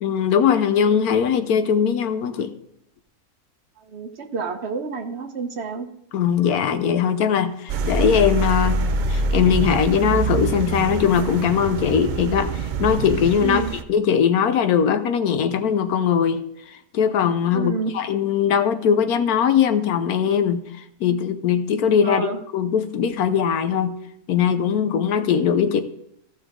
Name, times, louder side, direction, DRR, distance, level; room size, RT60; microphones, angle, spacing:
voice 1, 0.0-2.5 6.1-8.8 9.1-13.6 13.9-16.4 16.9-23.9 24.3-25.8, left 7 dB, 85° left, 9 dB, 1.3 m, -20 dB
voice 2, 3.8-5.9 13.4-13.7 17.5-17.9 22.0-22.4, right 5 dB, 50° right, 5 dB, 1.2 m, -29 dB
sound 1, 7.7-13.8, right 4 dB, 75° right, 0.4 m, -25 dB
14.5 x 6.0 x 3.7 m, 0.76 s
omnidirectional pair, 1.5 m